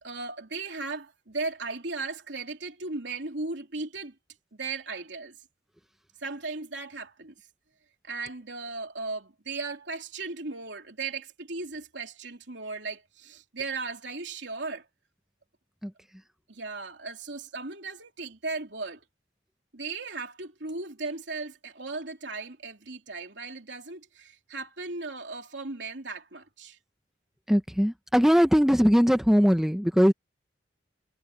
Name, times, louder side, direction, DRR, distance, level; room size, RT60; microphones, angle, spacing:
voice 1, 0.0-4.1 4.5-5.4 6.2-7.3 8.0-14.8 16.5-19.0 19.7-26.8, right 3 dB, 75° right, 3.3 m, -36 dB
voice 2, 27.5-30.1, equal, ahead, 1.0 m, -20 dB
head